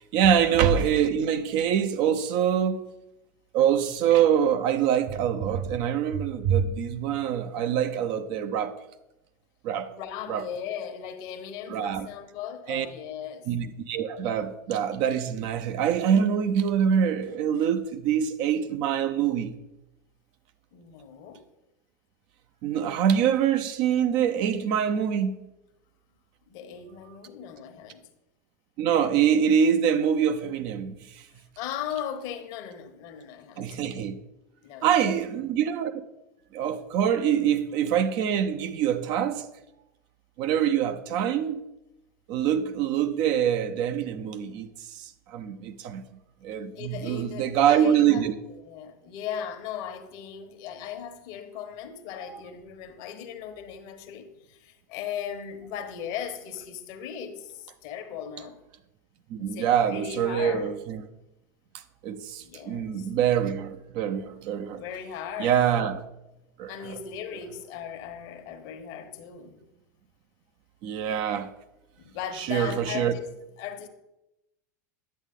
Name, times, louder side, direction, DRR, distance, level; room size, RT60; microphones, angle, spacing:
voice 1, 0.0-2.9 3.5-8.7 9.6-9.9 10.3-10.5 11.7-12.1 12.7-12.9 13.5-19.6 22.6-25.5 28.8-31.2 33.6-34.2 34.8-35.9 36.5-39.5 40.4-41.6 42.3-46.0 46.4-48.3 59.3-61.0 62.0-64.8 65.4-66.1 66.6-66.9 70.8-71.5 72.3-73.2, right 8 dB, 55° right, 0.7 m, -25 dB
voice 2, 9.9-13.5 20.7-21.4 26.5-28.0 31.6-33.9 34.6-35.2 46.7-48.3 48.6-58.6 59.4-60.7 62.4-63.1 64.7-65.6 66.7-69.6 72.0-73.9, left 8 dB, 55° left, 1.2 m, -38 dB
10.5 x 8.0 x 3.8 m
hypercardioid pair, 80°, 9 cm